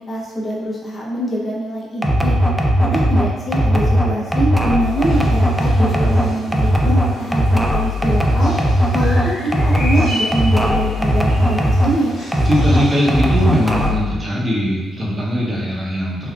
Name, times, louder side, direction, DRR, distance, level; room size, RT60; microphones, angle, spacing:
voice 1, 0.0-2.4 2.8-8.5 8.9-12.2, right 1 dB, 30° left, -5 dB, 0.7 m, -23 dB
sound 1, 2.0-12.0 12.3-14.1, equal, ahead, 0.3 m, -17 dB
sound 2, 4.8-13.9, left 1 dB, 65° left, 0.9 m, -33 dB
voice 2, 12.5-16.3, equal, 30° right, -5 dB, 0.8 m, -20 dB
3.5 x 2.2 x 2.3 m, 1.3 s
cardioid pair, 90°, 0 cm